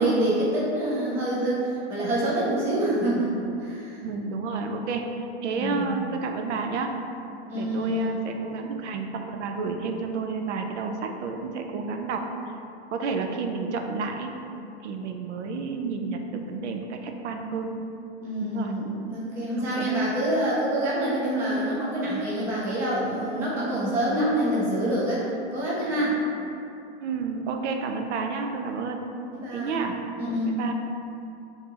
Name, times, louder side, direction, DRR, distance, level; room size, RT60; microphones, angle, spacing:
voice 1, 0.0-4.0 5.5-5.8 7.5-8.1 18.2-26.2 29.3-29.8 30.2-30.6, right 1 dB, 5° right, -8 dB, 0.3 m, -26 dB
voice 2, 4.0-6.9 7.5-12.2 12.9-14.3 14.8-17.7 18.4-18.7 19.6-19.9 27.0-29.0 29.5-30.0 30.6-30.7, right 4 dB, 85° right, 4 dB, 0.6 m, -30 dB
5.9 x 2.8 x 2.8 m, 2.7 s
supercardioid pair, 155°, 34 cm